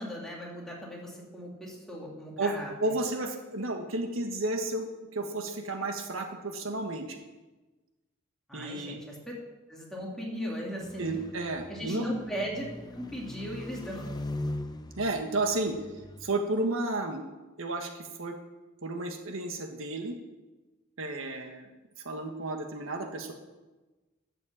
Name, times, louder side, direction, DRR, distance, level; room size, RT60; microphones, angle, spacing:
voice 1, 0.0-2.9 8.5-9.2 9.7-11.2 11.7-12.6 12.9-14.1, equal, ahead, -4 dB, 2.8 m, -37 dB
voice 2, 2.8-7.2 8.5-9.0 11.0-12.0 15.0-15.8 16.2-17.2 17.6-18.3 18.8-20.2 21.0-21.7 22.0-23.3, right 2 dB, 80° right, 4 dB, 1.5 m, -32 dB
sound 1, 10.8-16.3, left 1 dB, 20° left, 0.6 m, -40 dB
12.5 x 7.7 x 7.4 m, 1.2 s
head